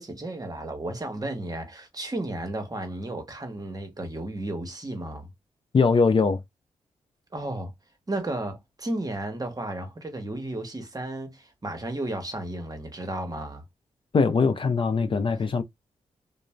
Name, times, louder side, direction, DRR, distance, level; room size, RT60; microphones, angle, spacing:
voice 1, 0.0-5.3 7.3-7.7 8.1-13.6, right 1 dB, 30° right, 0.9 m, -33 dB
voice 2, 5.7-6.4 14.1-15.6, left 4 dB, 45° left, 0.4 m, -21 dB
2.5 x 2.0 x 3.1 m
cardioid pair, 60°, 13 cm